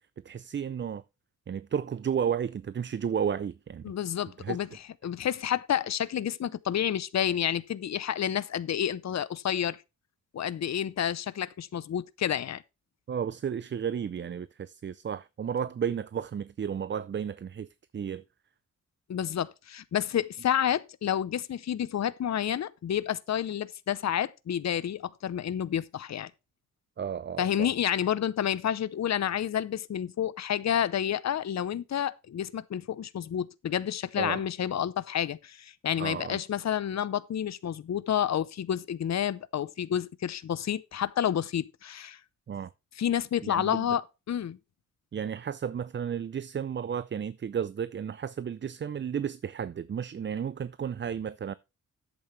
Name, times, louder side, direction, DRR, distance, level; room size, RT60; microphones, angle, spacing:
voice 1, 0.2-1.0 1.5-3.9 4.4-4.6 13.1-17.7 17.9-18.2 27.0-27.7 34.2-34.4 36.0-36.4 42.5-42.7 43.4-43.9 45.1-51.5, right 8 dB, 35° right, 0.5 m, -33 dB
voice 2, 3.8-9.8 10.3-12.6 19.1-26.3 27.4-42.2 43.0-44.0 44.3-44.6, left 9 dB, 60° left, 0.7 m, -29 dB
11.0 x 8.3 x 3.2 m
cardioid pair, 90°, 32 cm